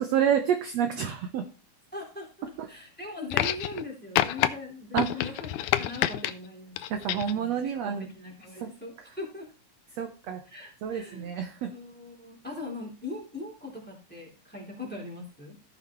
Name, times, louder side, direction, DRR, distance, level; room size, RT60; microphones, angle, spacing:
voice 1, 0.0-1.5 4.9-5.1 6.9-8.1 8.6-8.7 10.0-10.4 10.8-11.7, right 8 dB, 70° right, 6 dB, 1.7 m, -28 dB
voice 2, 1.9-6.8 7.3-9.5 10.4-11.3 11.7-15.6, left 2 dB, 5° left, -1 dB, 2.7 m, -40 dB
sound 1, 3.3-3.9 4.2-4.5 5.0-6.3 6.8-7.4 8.4-8.5, left 13 dB, 80° left, 1.9 m, -27 dB
15.5 x 5.7 x 3.1 m, 0.35 s
omnidirectional pair, 3.8 m